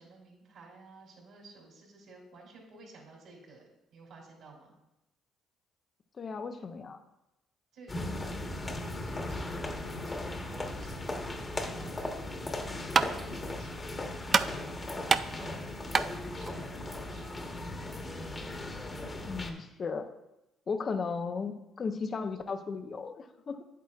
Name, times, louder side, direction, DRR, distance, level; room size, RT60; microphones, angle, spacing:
voice 1, 0.0-4.8 7.7-12.4 13.0-17.3, right 3 dB, 65° right, -1 dB, 3.1 m, -54 dB
voice 2, 6.2-7.0 19.3-20.1 20.7-23.6, left 5 dB, 45° left, 8 dB, 0.7 m, -35 dB
sound 1, 7.9-19.5, left 2 dB, 25° left, 1.2 m, -37 dB
sound 2, 12.4-17.7, right 5 dB, 45° right, 0.3 m, -31 dB
9.3 x 8.3 x 2.4 m, 0.91 s
hypercardioid pair, 60°, 0 cm